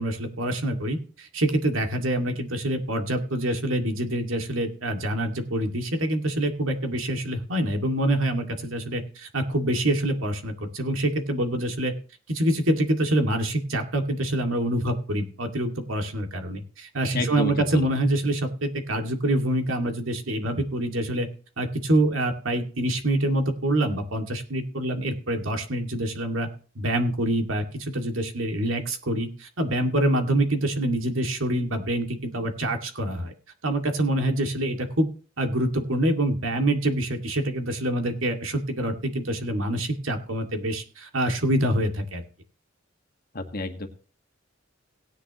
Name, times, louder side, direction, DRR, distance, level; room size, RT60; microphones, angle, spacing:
voice 1, 0.0-11.9 12.3-21.3 21.6-26.5 26.8-33.3 33.6-35.1 35.4-42.2, right 1 dB, 90° right, 4 dB, 2.2 m, -26 dB
voice 2, 17.1-17.9 43.3-43.9, left 2 dB, 50° left, 6 dB, 1.6 m, -30 dB
17.5 x 10.0 x 3.0 m, 0.38 s
head